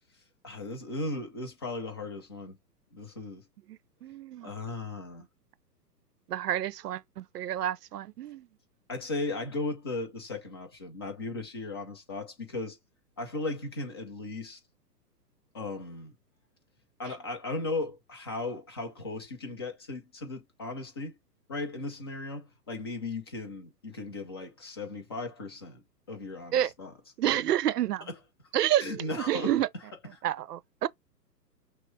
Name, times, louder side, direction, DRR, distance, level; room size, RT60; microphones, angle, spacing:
voice 1, 0.4-2.5 2.9-3.4 4.4-5.3 8.9-12.8 13.2-14.6 15.5-16.2 17.0-21.2 21.5-25.8 26.1-26.9 28.1-28.2 28.8-29.8 30.1-30.2, left 2 dB, 20° left, 0.4 m, -36 dB
voice 2, 4.0-4.5 6.3-8.5 26.5-26.7 27.2-28.1 28.5-28.9 29.3-29.7 30.2-30.9, right 12 dB, 70° right, 0.6 m, -29 dB
5.9 x 2.0 x 3.1 m
hypercardioid pair, 125°, 49 cm